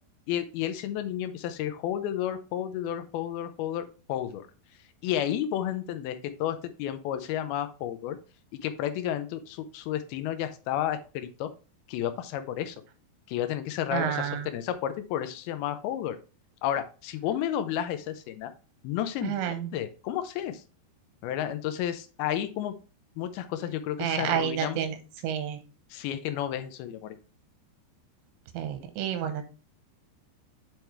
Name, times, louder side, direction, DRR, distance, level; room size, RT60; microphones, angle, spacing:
voice 1, 0.3-4.5 5.0-8.2 8.5-11.5 11.9-12.8 13.3-16.2 16.6-18.5 18.8-20.6 21.2-22.7 23.2-24.8 25.9-27.2, left 11 dB, 85° left, 9 dB, 2.2 m, -32 dB
voice 2, 13.9-14.4 19.2-19.7 24.0-24.9 25.2-25.6 28.5-29.5, right 9 dB, 85° right, 8 dB, 3.3 m, -29 dB
8.9 x 4.6 x 3.2 m, 0.35 s
omnidirectional pair, 5.1 m